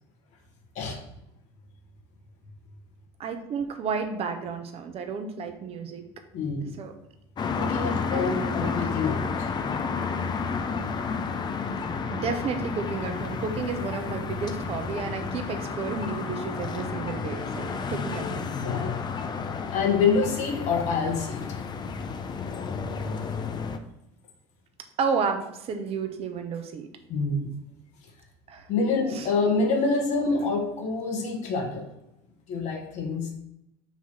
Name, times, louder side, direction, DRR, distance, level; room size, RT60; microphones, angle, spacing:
voice 1, 3.2-6.0 6.8-6.9 8.1-8.9 12.1-18.5 25.0-26.9 28.5-28.7 29.1-29.3, right 5 dB, 45° right, 6 dB, 1.0 m, -32 dB
voice 2, 6.3-6.7 7.5-9.3 18.5-19.0 19.7-21.5 27.1-27.5 28.7-31.9 32.5-33.3, left 4 dB, 55° left, 2 dB, 1.5 m, -26 dB
sound 1, 7.4-23.8, left 5 dB, 30° left, 0.6 m, -31 dB
5.8 x 3.1 x 5.6 m, 0.85 s
hypercardioid pair, 85°, 14 cm